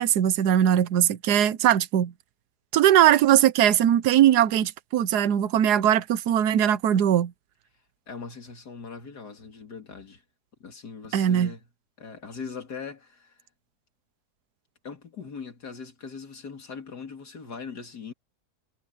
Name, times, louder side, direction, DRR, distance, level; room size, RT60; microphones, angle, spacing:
voice 1, 0.0-2.1 2.7-7.3 11.1-11.5, right 11 dB, 80° right, 1.4 m, -20 dB
voice 2, 8.1-10.2 10.6-11.7 12.0-13.4 14.8-18.1, left 5 dB, 90° left, 3.2 m, -40 dB
omnidirectional pair, 1.7 m